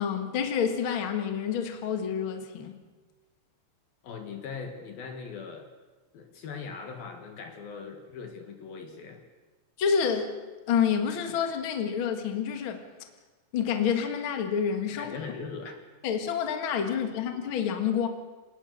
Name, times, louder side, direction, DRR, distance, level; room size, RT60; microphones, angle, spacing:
voice 1, 0.0-2.8 9.8-10.4 10.7-12.9 13.5-15.2 16.0-18.1, left 7 dB, 80° left, 5 dB, 1.1 m, -28 dB
voice 2, 4.0-5.7 6.1-9.2 15.0-15.8 17.1-17.2, left 5 dB, 60° left, 5 dB, 3.2 m, -40 dB
26.5 x 19.0 x 6.7 m, 1.3 s
omnidirectional pair, 5.5 m